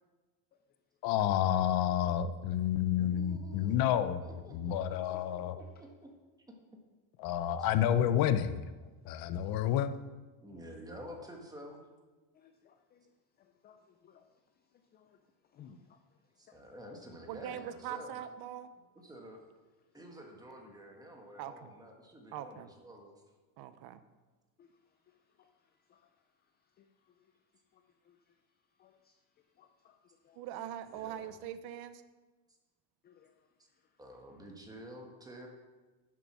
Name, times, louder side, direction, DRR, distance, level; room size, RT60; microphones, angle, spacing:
voice 1, 1.0-4.2 4.5-5.6 7.2-8.7 9.1-9.9, left 10 dB, 55° left, 11 dB, 0.7 m, -29 dB
voice 2, 2.9-6.1 7.6-7.7 10.4-11.8 16.4-18.2 19.0-19.4 19.9-23.1 30.9-31.3 33.6-33.7 34.0-35.5, equal, 10° right, 1 dB, 1.5 m, -50 dB
voice 3, 12.3-13.0 13.6-14.2 14.9-15.1 15.5-16.0 16.5-16.7 24.6-24.7 25.4-25.5 25.9-26.0 26.8-27.2 28.1-28.2 28.8-29.1 29.6-30.0 30.2-30.4 33.0-33.3 34.0-34.1, left 7 dB, 25° left, 6 dB, 0.3 m, -60 dB
voice 4, 17.3-18.7 21.4-21.7 22.3-22.7 23.6-24.0 30.3-32.0, right 10 dB, 55° right, 12 dB, 0.7 m, -42 dB
10.5 x 7.5 x 6.1 m, 1.2 s
cardioid pair, 170°, 44 cm